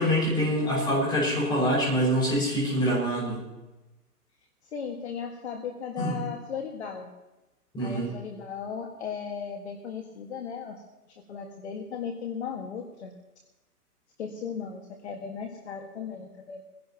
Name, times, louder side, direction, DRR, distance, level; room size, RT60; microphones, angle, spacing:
voice 1, 0.0-3.4 6.0-6.2 7.7-8.1, equal, 10° left, -3 dB, 6.0 m, -25 dB
voice 2, 4.7-7.1 7.8-10.8 11.3-13.1 14.2-16.6, left 6 dB, 45° left, 2 dB, 1.9 m, -36 dB
23.0 x 16.5 x 3.0 m, 1.0 s
hypercardioid pair, 155°, 47 cm